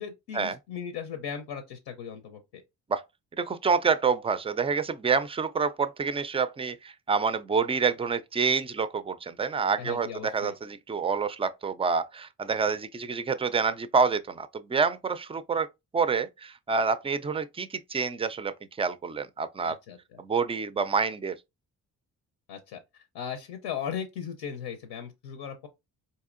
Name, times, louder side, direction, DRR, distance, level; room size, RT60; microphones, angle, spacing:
voice 1, 0.0-2.6 9.8-10.5 19.6-20.2 22.5-25.7, left 8 dB, 80° left, 0.7 m, -38 dB
voice 2, 3.4-15.7 15.9-19.8 20.2-21.3, right 5 dB, 15° right, 0.3 m, -27 dB
4.1 x 2.7 x 2.4 m
supercardioid pair, 50°, 41 cm